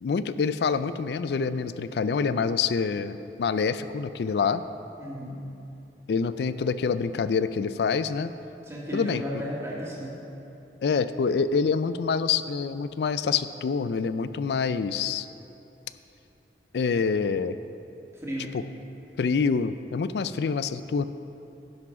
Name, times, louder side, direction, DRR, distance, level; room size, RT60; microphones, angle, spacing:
voice 1, 0.0-4.6 6.1-8.3 8.9-9.2 10.8-15.3 16.7-17.6 18.5-18.6 19.2-21.1, left 5 dB, 65° left, 13 dB, 0.3 m, -26 dB
voice 2, 5.0-5.4 8.6-10.2 18.2-18.5, equal, 15° right, -5 dB, 1.7 m, -34 dB
10.5 x 6.1 x 5.8 m, 2.8 s
head